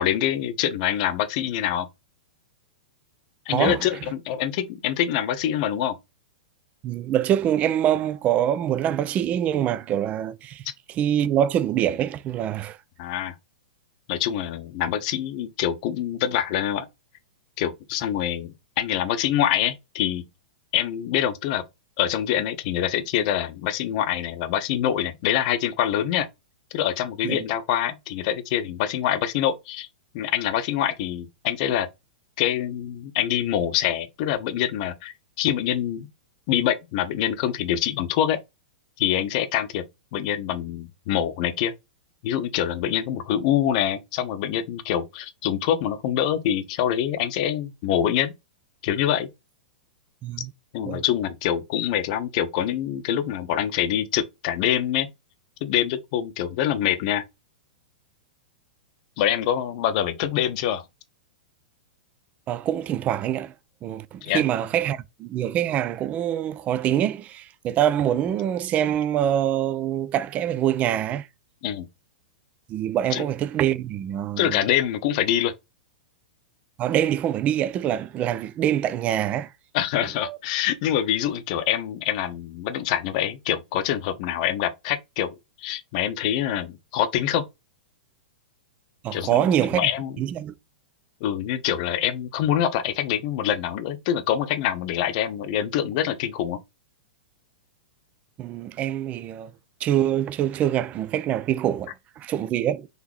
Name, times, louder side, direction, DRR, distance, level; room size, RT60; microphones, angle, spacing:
voice 1, 0.0-1.9 3.5-6.0 13.0-13.3 14.1-16.9 17.6-20.2 20.7-21.6 22.0-26.3 26.7-29.9 30.1-31.9 32.4-36.1 36.5-38.4 39.0-39.8 40.1-41.7 42.2-48.3 48.8-49.3 50.7-55.1 55.6-57.2 59.2-60.8 64.2-64.4 71.6-71.9 73.1-73.2 74.4-75.5 79.7-87.4 89.1-90.1 91.2-96.6, left 10 dB, 50° left, 0.7 m, -25 dB
voice 2, 3.5-3.9 6.8-12.8 27.2-27.4 50.2-50.5 50.9-51.0 62.5-63.5 63.8-71.3 72.7-74.6 76.8-79.5 80.2-80.4 89.0-89.9 90.2-90.5 98.4-99.5 99.8-102.9, right 11 dB, 30° right, 0.4 m, -25 dB
4.0 x 2.9 x 3.0 m
hypercardioid pair, 110°, 5 cm